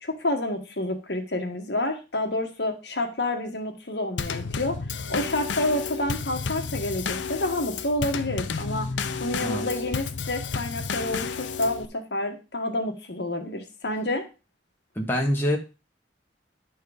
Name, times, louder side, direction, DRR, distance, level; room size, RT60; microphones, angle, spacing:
voice 1, 0.0-4.8 5.1-8.9 9.2-14.2, left 1 dB, 65° left, 4 dB, 1.7 m, -29 dB
Drum kit / Snare drum / Bass drum, 4.2-11.9, left 5 dB, 85° left, 0.6 m, -31 dB
voice 2, 14.9-15.6, left 1 dB, 10° left, -1 dB, 1.4 m, -25 dB
10.5 x 4.6 x 5.0 m, 0.31 s
head